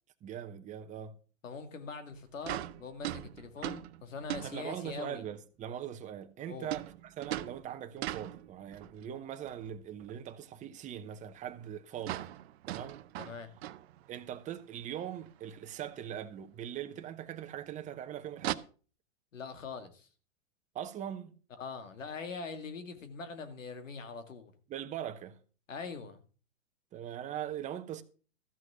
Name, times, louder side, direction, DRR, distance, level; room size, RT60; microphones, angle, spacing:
voice 1, 0.2-1.2 4.4-12.4 12.7-13.0 14.1-18.6 20.7-21.3 24.7-25.4 26.9-28.0, right 10 dB, 20° right, 0.9 m, -41 dB
voice 2, 1.4-5.2 6.5-6.7 13.2-13.5 19.3-20.1 21.6-24.5 25.7-26.2, left 4 dB, 80° left, 2.3 m, -42 dB
sound 1, 2.1-2.2 2.4-5.1 6.7-9.0 9.4-10.2 10.4-10.5 10.9-11.0 11.3-11.4 11.6-11.7 12.0-14.4 14.8-14.9 15.2-15.3 16.4-16.5 18.4-18.5, right 14 dB, 55° right, 0.7 m, -40 dB
13.5 x 6.3 x 6.2 m
hypercardioid pair, 125°, 38 cm